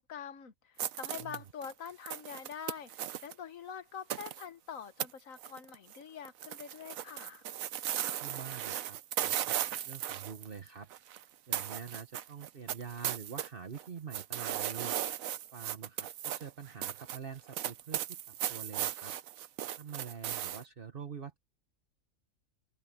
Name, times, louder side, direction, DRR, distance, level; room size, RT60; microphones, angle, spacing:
voice 1, 0.0-7.4, left 7 dB, 80° left, 1.5 m, -45 dB
sound 1, 0.8-3.3 4.1-4.4 5.0-5.1 5.4-6.0 6.3-11.2 11.5-13.5 13.7-20.6, right 11 dB, 85° right, 1.2 m, -37 dB
voice 2, 8.2-10.9 11.5-15.0 15.5-19.2 19.8-21.4, right 6 dB, 45° right, 1.5 m, -45 dB
omnidirectional pair, 1.4 m